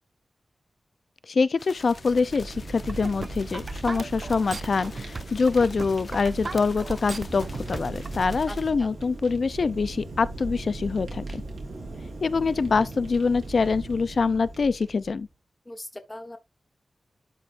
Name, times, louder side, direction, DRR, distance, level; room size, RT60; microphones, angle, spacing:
voice 1, 1.3-11.4 12.2-15.3, left 4 dB, 60° left, 0.5 m, -25 dB
sound 1, 1.6-8.7, left 3 dB, 45° left, 0.8 m, -48 dB
Fire, 1.7-15.2, right 2 dB, 80° right, 3.6 m, -38 dB
sound 2, 2.7-8.2, right 3 dB, 40° right, 0.5 m, -36 dB
voice 2, 8.5-8.9 15.6-16.4, left 1 dB, 15° left, 1.4 m, -40 dB
12.0 x 4.5 x 2.5 m
wide cardioid pair, 135°, 0 cm